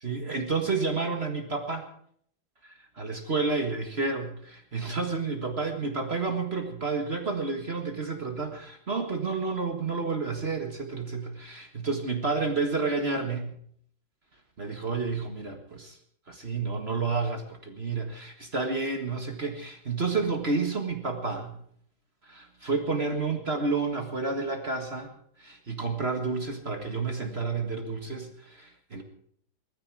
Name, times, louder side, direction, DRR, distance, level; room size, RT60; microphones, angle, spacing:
voice 1, 0.0-1.9 2.6-13.5 14.6-16.0 16.3-21.6 22.2-25.1 25.4-29.0, right 4 dB, 35° right, 5 dB, 1.8 m, -30 dB
20.0 x 14.0 x 4.8 m, 0.62 s
omnidirectional pair, 2.1 m